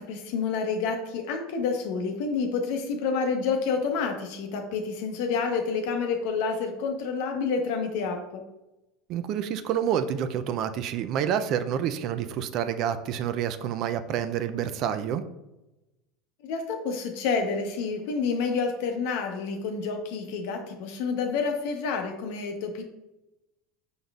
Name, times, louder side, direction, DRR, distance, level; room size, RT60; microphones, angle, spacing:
voice 1, 0.0-8.4 16.4-22.8, left 5 dB, 70° left, 5 dB, 0.7 m, -29 dB
voice 2, 9.1-15.2, right 9 dB, 55° right, 11 dB, 0.4 m, -28 dB
5.1 x 3.9 x 2.3 m, 0.95 s
supercardioid pair, 105°, 0 cm